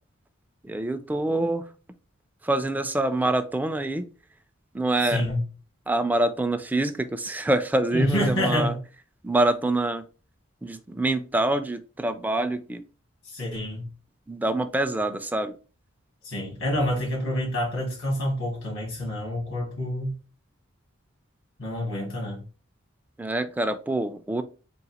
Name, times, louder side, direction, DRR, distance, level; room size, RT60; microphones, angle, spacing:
voice 1, 0.6-1.7 2.4-4.1 4.7-5.2 5.9-8.7 9.2-10.0 10.6-12.8 14.3-15.6 23.2-24.4, right 2 dB, 10° right, 0.3 m, -25 dB
voice 2, 5.0-5.4 7.9-8.8 13.3-13.9 16.2-20.2 21.6-22.4, left 1 dB, 85° left, 1.8 m, -27 dB
3.8 x 2.5 x 4.1 m
head